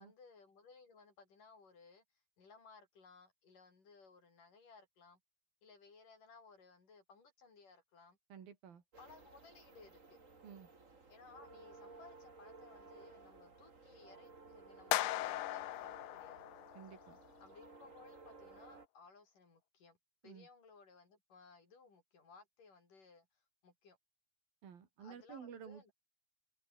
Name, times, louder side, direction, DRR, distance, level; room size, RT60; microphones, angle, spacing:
voice 1, 0.0-2.0 2.4-5.2 5.6-8.2 9.0-10.2 11.1-16.5 17.4-20.0 20.2-24.0 25.0-25.9, left 4 dB, 50° left, 7.9 m, -61 dB
voice 2, 8.3-8.8 10.4-10.7 16.7-17.2 20.2-20.5 24.6-25.9, right 7 dB, 60° right, 4.7 m, -52 dB
sound 1, 8.9-18.9, right 3 dB, 20° right, 2.5 m, -58 dB
sound 2, 14.9-17.1, left 16 dB, 80° left, 2.9 m, -38 dB
omnidirectional pair, 4.8 m